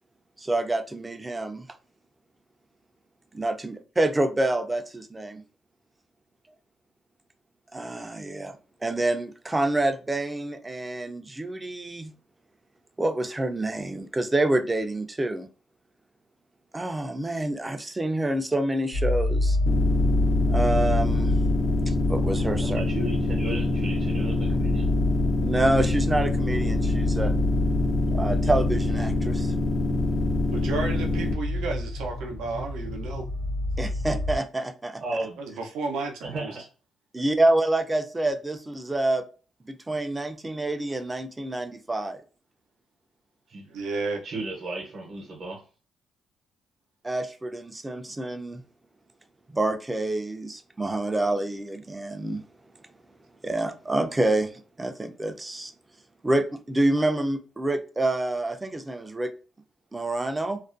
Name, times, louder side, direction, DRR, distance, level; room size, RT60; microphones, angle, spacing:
voice 1, 0.4-1.7 3.3-5.4 7.7-8.5 8.8-12.1 13.0-15.5 16.7-19.6 20.5-21.3 21.9-22.8 25.4-27.3 28.1-29.5 33.8-35.0 37.1-39.2 39.6-42.2 47.0-48.6 49.5-52.4 53.4-55.7 56.2-59.3 59.9-60.6, right 2 dB, 20° right, 0.4 m, -27 dB
sound 1, 18.9-34.4, left 1 dB, 80° left, 0.8 m, -28 dB
sound 2, 19.7-31.3, left 2 dB, 60° left, 0.4 m, -26 dB
voice 2, 22.6-24.9 35.0-35.4 36.2-36.7 43.5-43.7 44.2-45.6, right 2 dB, 55° right, 0.7 m, -34 dB
voice 3, 30.5-33.3 35.5-36.5 43.7-44.2, right 3 dB, 90° right, 0.5 m, -32 dB
2.4 x 2.1 x 2.4 m
cardioid pair, 85°, 0 cm